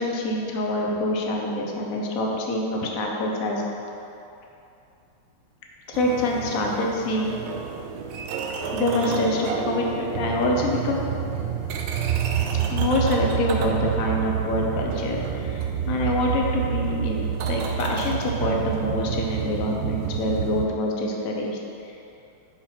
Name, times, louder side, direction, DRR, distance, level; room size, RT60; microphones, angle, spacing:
voice 1, 0.0-3.6 5.9-7.4 8.7-11.0 12.7-21.9, left 1 dB, 65° left, -1 dB, 0.8 m, -26 dB
sound 1, 5.9-20.7, right 7 dB, 80° right, 1.4 m, -28 dB
5.6 x 4.5 x 5.8 m, 2.8 s
omnidirectional pair, 2.3 m